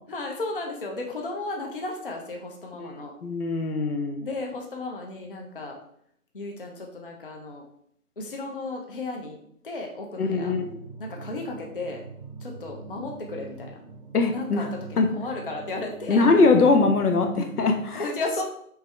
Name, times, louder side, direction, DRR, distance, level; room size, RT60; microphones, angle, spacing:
voice 1, 0.1-3.1 4.2-5.8 6.3-7.6 8.2-9.4 9.6-10.5 11.0-12.0 12.4-13.8 14.3-16.3 17.9-18.4, left 2 dB, 40° left, 1 dB, 0.6 m, -34 dB
voice 2, 3.2-4.3 10.2-10.8 14.1-14.7 15.0-15.1 16.1-18.0, left 3 dB, 80° left, 5 dB, 1.0 m, -21 dB
sound 1, 10.3-17.9, right 3 dB, 30° right, 0.6 m, -43 dB
4.7 x 3.6 x 3.2 m, 0.68 s
hypercardioid pair, 165°, 44 cm